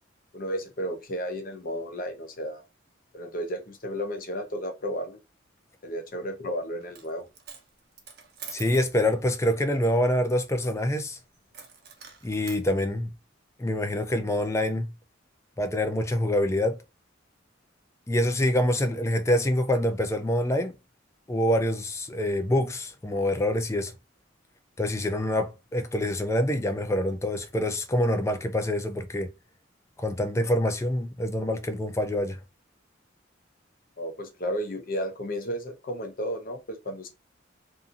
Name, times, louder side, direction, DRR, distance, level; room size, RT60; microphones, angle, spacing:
voice 1, 0.3-2.6 3.1-5.2 5.8-7.3 34.0-37.1, equal, 45° left, 0.7 m, -33 dB
Coin (dropping), 6.8-7.1 7.3-8.9 11.5-12.6, right 6 dB, 55° right, 0.6 m, -44 dB
voice 2, 8.5-11.2 12.2-13.1 13.6-14.9 15.6-16.8 18.1-20.7 21.3-23.9 24.8-29.3 30.0-32.4, left 1 dB, 15° left, 0.4 m, -26 dB
2.7 x 2.6 x 2.4 m
head